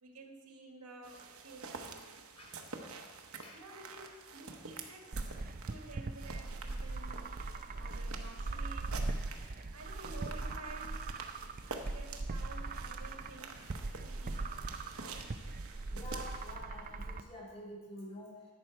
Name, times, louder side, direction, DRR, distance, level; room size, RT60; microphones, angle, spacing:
voice 1, 0.0-2.1 3.5-9.0 9.7-11.2 11.7-15.2, right 2 dB, 90° right, 3 dB, 1.6 m, -52 dB
sound 1, 1.0-16.6, right 4 dB, 70° right, 1.0 m, -48 dB
sound 2, 5.1-17.2, right 3 dB, 40° right, 0.5 m, -40 dB
voice 2, 15.9-18.5, equal, 30° left, -3 dB, 3.3 m, -48 dB
11.0 x 10.5 x 4.4 m, 1.3 s
head